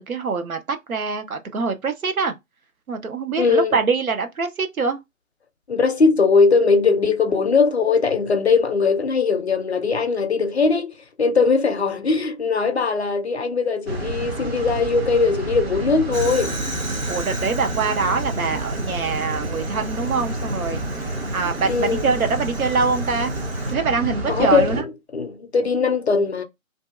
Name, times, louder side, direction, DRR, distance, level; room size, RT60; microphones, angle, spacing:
voice 1, 0.1-2.3 2.9-5.0 17.1-20.8 21.3-23.3 23.7-24.8, right 4 dB, 85° right, 0.7 m, -24 dB
voice 2, 3.4-3.8 5.7-16.6 21.6-22.1 24.3-26.4, left 4 dB, 50° left, 0.5 m, -20 dB
sound 1, 13.9-24.8, right 1 dB, 50° right, 0.6 m, -29 dB
Fire, 16.1-23.7, right 2 dB, 65° right, 1.3 m, -37 dB
2.6 x 2.3 x 2.4 m
figure-of-eight pair, 150°, 42 cm